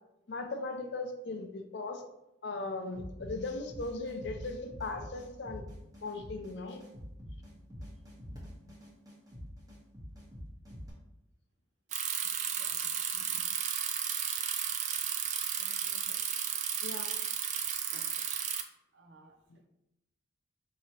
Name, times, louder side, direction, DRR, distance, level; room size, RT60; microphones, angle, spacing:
voice 1, 0.3-2.0 2.4-5.6 6.0-6.8 13.1-13.5 16.8-17.1 17.9-18.0 19.5-19.6, left 3 dB, 60° left, 6 dB, 0.5 m, -38 dB
sound 1, 2.9-10.9, equal, 20° right, 1.0 m, -46 dB
Bicycle, 11.9-18.6, right 8 dB, 40° right, 0.3 m, -33 dB
voice 2, 15.6-16.2 17.9-18.5 18.9-19.4, right 1 dB, 70° right, 4 dB, 0.6 m, -60 dB
4.6 x 2.9 x 2.9 m, 0.87 s
head